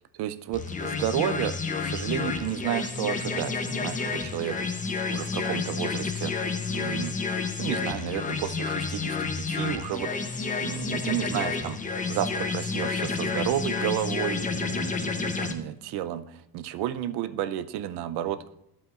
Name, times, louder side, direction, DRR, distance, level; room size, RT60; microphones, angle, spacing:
voice 1, 0.1-4.6 5.1-6.3 6.7-7.2 7.6-11.8 12.1-18.4, right 11 dB, 75° right, 13 dB, 0.6 m, -32 dB
sound 1, 0.5-15.5, left 4 dB, 20° left, 0.8 m, -30 dB
11.0 x 7.8 x 2.4 m, 0.85 s
cardioid pair, 100°, 40 cm